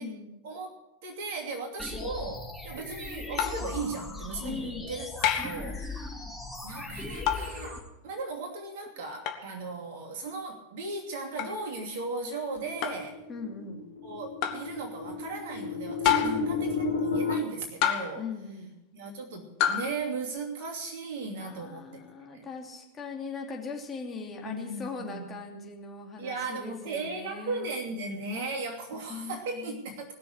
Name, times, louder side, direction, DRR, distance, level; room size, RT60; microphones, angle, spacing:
voice 1, 0.4-5.1 5.4-6.2 6.6-13.2 14.0-18.3 18.9-22.0 22.3-22.5 24.4-25.4 26.2-30.2, right 3 dB, 50° right, 2 dB, 2.7 m, -37 dB
sound 1, 1.8-7.8, left 2 dB, ahead, 4.6 m, -39 dB
sound 2, 3.4-3.7 5.2-5.6 7.3-7.5 9.2-9.4 11.4-11.6 12.8-13.1 14.4-14.7 16.0-16.5 17.8-18.3 19.6-19.9, left 10 dB, 45° left, 1.5 m, -27 dB
voice 2, 4.4-4.8 13.3-13.8 16.2-16.6 18.2-18.7 21.3-27.7 28.9-29.8, left 5 dB, 20° left, 1 dB, 2.8 m, -40 dB
sound 3, 12.6-17.4, left 4 dB, 75° left, 2.1 m, -32 dB
20.0 x 6.9 x 8.0 m, 0.95 s
figure-of-eight pair, 90°, 0 cm